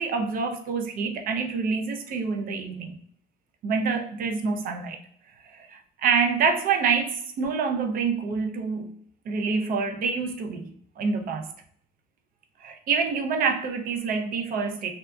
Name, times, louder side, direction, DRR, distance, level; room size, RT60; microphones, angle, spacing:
voice 1, 0.0-2.9 3.6-5.0 5.4-8.9 9.3-11.5 12.6-14.9, right 5 dB, 60° right, 4 dB, 0.5 m, -27 dB
2.7 x 2.3 x 2.2 m, 0.63 s
cardioid pair, 110°, 17 cm